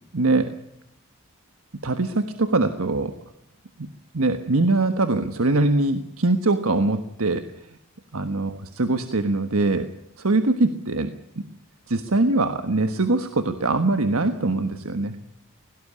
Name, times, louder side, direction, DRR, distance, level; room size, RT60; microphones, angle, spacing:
voice 1, 0.1-0.5 1.8-3.1 3.8-3.9 4.1-7.8 8.1-11.4 11.9-15.2, right 2 dB, 85° right, 8 dB, 1.4 m, -23 dB
18.0 x 17.0 x 9.9 m, 0.83 s
head